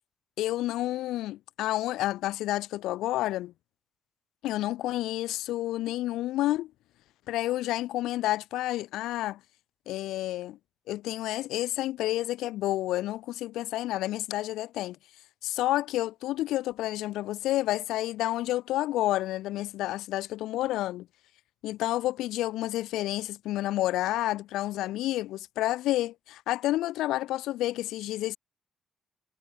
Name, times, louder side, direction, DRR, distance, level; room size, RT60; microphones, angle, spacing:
voice 1, 0.4-3.5 4.4-6.7 7.3-9.4 9.9-10.6 10.9-15.0 15.4-21.1 21.6-28.4, left 15 dB, 90° left, 0.6 m, -30 dB
cardioid pair, 90°, 0 cm